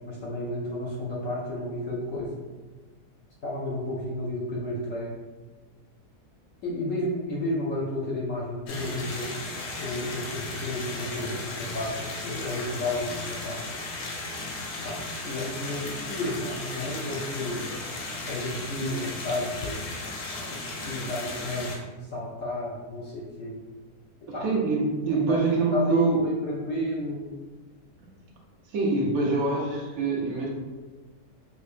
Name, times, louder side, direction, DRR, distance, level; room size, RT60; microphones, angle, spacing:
voice 1, 0.0-2.3 3.4-5.1 6.6-9.3 9.8-13.6 14.8-17.7 18.2-19.7 20.5-20.6 20.8-21.8 22.1-23.6 24.3-24.5 25.1-25.4 25.7-27.3, left 1 dB, 65° left, -4 dB, 0.8 m, -32 dB
sound 1, 8.7-21.8, left 2 dB, 85° left, 1.2 m, -36 dB
voice 2, 24.4-26.2 28.7-30.5, right 4 dB, 65° right, -2 dB, 1.1 m, -25 dB
5.4 x 2.0 x 2.4 m, 1.3 s
omnidirectional pair, 1.7 m